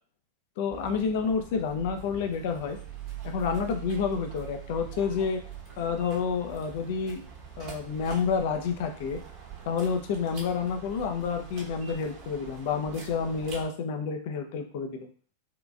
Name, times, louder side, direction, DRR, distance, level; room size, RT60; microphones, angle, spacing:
voice 1, 0.6-2.8 3.2-5.4 5.8-7.2 7.6-9.2 9.7-15.1, left 6 dB, 50° left, 6 dB, 0.6 m, -29 dB
sound 1, 0.7-13.7, right 7 dB, 40° right, 1.3 m, -43 dB
3.7 x 3.4 x 2.4 m, 0.43 s
figure-of-eight pair, 90°, 0 cm